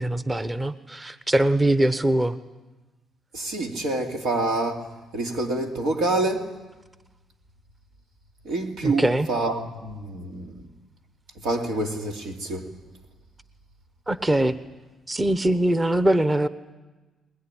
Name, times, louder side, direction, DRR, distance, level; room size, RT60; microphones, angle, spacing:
voice 1, 0.0-2.4 8.8-9.3 14.1-14.5 15.1-16.5, right 1 dB, 20° right, 0.9 m, -22 dB
voice 2, 3.3-4.8 5.1-6.5 8.4-10.5 11.4-12.7, right 2 dB, 90° right, 2.9 m, -27 dB
21.0 x 20.5 x 10.0 m
cardioid pair, 90°, 0 cm